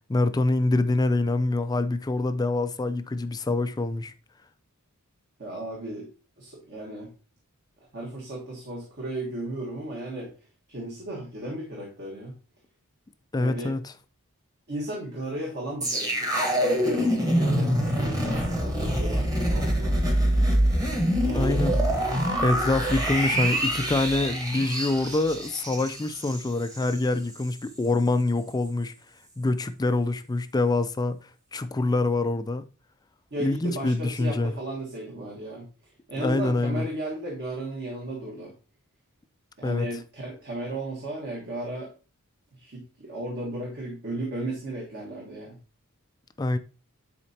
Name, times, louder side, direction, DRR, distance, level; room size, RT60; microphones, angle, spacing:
voice 1, 0.1-4.1 13.3-13.9 21.3-21.8 22.4-28.9 29.4-31.2 31.5-32.6 33.4-34.5 36.2-36.9 39.6-39.9 46.4-46.6, left 2 dB, 15° left, 0.4 m, -25 dB
voice 2, 5.4-6.1 6.4-7.1 7.9-10.3 10.7-12.3 13.4-13.8 14.7-20.3 21.2-21.6 33.3-35.7 36.1-38.5 39.6-41.9 42.6-45.5, right 1 dB, 50° right, 1.5 m, -35 dB
sound 1, 15.8-27.0 27.3-27.5, equal, 15° right, 1.3 m, -25 dB
10.0 x 4.3 x 2.8 m
head